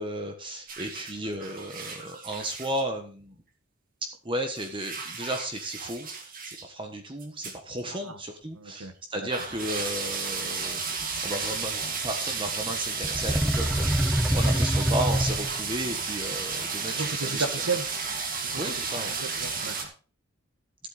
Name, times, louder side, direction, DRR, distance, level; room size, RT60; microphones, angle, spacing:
voice 1, 0.0-3.3 4.2-17.5 18.6-19.1, right 1 dB, 20° right, 5 dB, 1.3 m, -34 dB
sound 1, 0.7-2.8 4.6-6.6 7.2-7.6 7.8-7.9 8.7-8.8 9.3-19.8, right 5 dB, 40° right, 2.2 m, -33 dB
voice 2, 8.5-9.3 16.9-17.8 18.4-19.9, right 4 dB, 85° right, 10 dB, 1.5 m, -34 dB
sound 2, 13.0-15.8, equal, 5° right, 0.4 m, -25 dB
14.0 x 8.5 x 4.1 m, 0.39 s
head